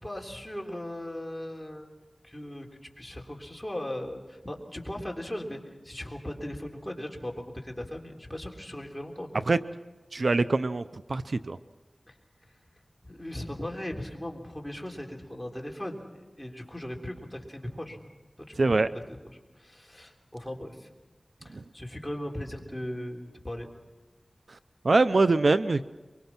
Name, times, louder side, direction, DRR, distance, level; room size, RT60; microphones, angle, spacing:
voice 1, 0.0-1.9 2.2-2.7 3.0-9.3 12.1-12.2 13.0-18.0 18.5-20.9 21.4-23.7, left 1 dB, 15° left, 1 dB, 3.5 m, -38 dB
voice 2, 10.1-10.8 11.1-11.6 18.6-18.9 21.5-21.6 24.8-25.9, right 3 dB, 70° right, 12 dB, 0.6 m, -23 dB
24.0 x 23.5 x 6.0 m, 1.2 s
wide cardioid pair, 55°, 0 cm